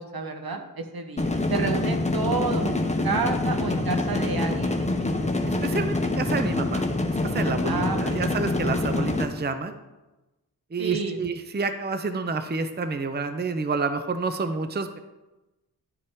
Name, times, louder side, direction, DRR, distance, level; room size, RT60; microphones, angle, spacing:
voice 1, 0.0-4.9 5.2-5.3 7.6-8.4 10.8-11.2, right 4 dB, 70° right, 4 dB, 1.1 m, -30 dB
sound 1, 1.2-9.2, left 2 dB, 20° left, 0.9 m, -26 dB
voice 2, 5.5-6.8 7.1-9.8 10.7-15.0, right 4 dB, 25° right, 8 dB, 0.6 m, -29 dB
11.5 x 5.3 x 3.6 m, 1.1 s
cardioid pair, 45°, 38 cm